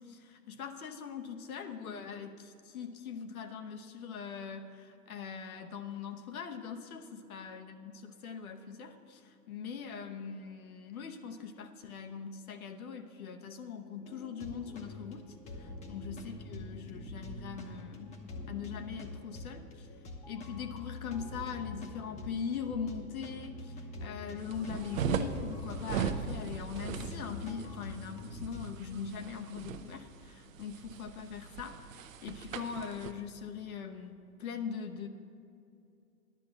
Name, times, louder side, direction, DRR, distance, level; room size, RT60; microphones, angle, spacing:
voice 1, 0.0-15.3 15.5-18.2 18.5-19.9 20.3-35.1, left 6 dB, 65° left, 6 dB, 1.1 m, -41 dB
sound 1, 13.9-28.7, left 2 dB, 15° left, 0.8 m, -45 dB
sound 2, 24.4-33.1, right 7 dB, 55° right, 0.8 m, -38 dB
10.5 x 7.2 x 7.4 m, 2.6 s
hypercardioid pair, 130°, 47 cm